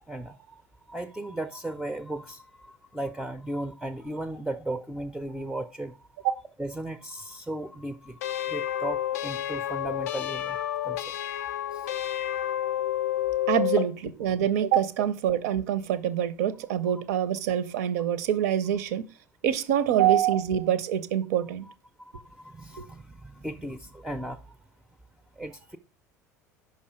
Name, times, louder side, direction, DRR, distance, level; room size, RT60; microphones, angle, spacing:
voice 1, 0.1-0.6 0.9-6.0 6.6-11.0 11.7-11.8 13.4-13.5 22.1-24.4 25.4-25.8, right 1 dB, 5° right, 0.4 m, -36 dB
sound 1, 8.2-13.9, left 12 dB, 65° left, 0.4 m, -30 dB
voice 2, 13.5-13.9 14.2-19.1 19.4-21.7 22.8-22.9, right 10 dB, 60° right, 0.6 m, -25 dB
5.4 x 4.4 x 5.0 m
figure-of-eight pair, 70°, 9 cm